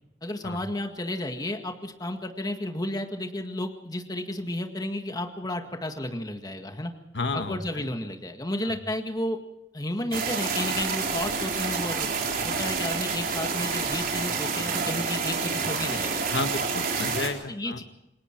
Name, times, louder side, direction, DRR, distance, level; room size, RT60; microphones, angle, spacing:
voice 1, 0.2-6.9 7.3-9.4 9.7-12.1 12.4-16.2 17.0-17.2 17.5-17.8, left 1 dB, 20° left, 5 dB, 1.9 m, -32 dB
voice 2, 7.1-7.8 8.6-8.8 16.3-17.8, left 3 dB, 80° left, 8 dB, 1.5 m, -32 dB
sound 1, 10.1-17.3, right 5 dB, 55° right, 4.1 m, -28 dB
28.0 x 20.5 x 4.6 m, 0.90 s
head